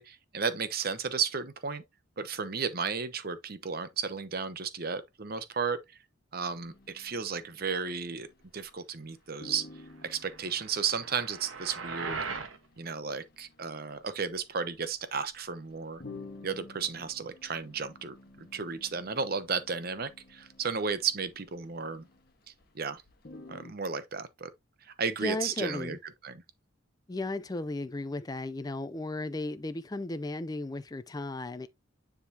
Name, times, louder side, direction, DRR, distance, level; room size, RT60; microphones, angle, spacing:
voice 1, 0.0-1.8 2.2-5.8 6.3-8.3 8.5-9.7 10.0-12.3 12.8-16.0 16.4-22.0 22.7-23.0 23.5-24.5 25.0-26.0 26.2-26.4, right 5 dB, 50° right, 0.8 m, -33 dB
sound 1, 6.5-8.8 9.0-9.1 9.4-22.7 23.0-23.7, left 2 dB, 50° left, 1.3 m, -52 dB
sound 2, 10.3-12.6, right 4 dB, 80° right, 1.2 m, -39 dB
voice 2, 25.2-26.0 27.1-31.7, left 2 dB, 20° left, 0.4 m, -35 dB
9.7 x 3.7 x 2.7 m
head